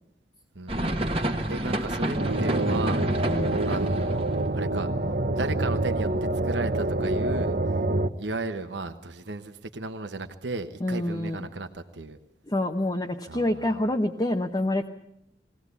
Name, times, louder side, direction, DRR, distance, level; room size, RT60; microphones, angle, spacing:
voice 1, 0.5-4.3 4.5-4.9 5.4-7.8 8.2-12.2 13.3-13.8, right 3 dB, 90° right, 7 dB, 1.1 m, -35 dB
sound 1, 0.7-4.3, right 1 dB, 35° right, 1.4 m, -29 dB
sound 2, 2.1-8.1, right 2 dB, 55° right, 0.9 m, -26 dB
voice 2, 3.3-3.6 10.8-11.5 12.5-14.9, left 1 dB, 25° left, 3 dB, 0.8 m, -27 dB
21.5 x 17.0 x 8.2 m, 0.79 s
head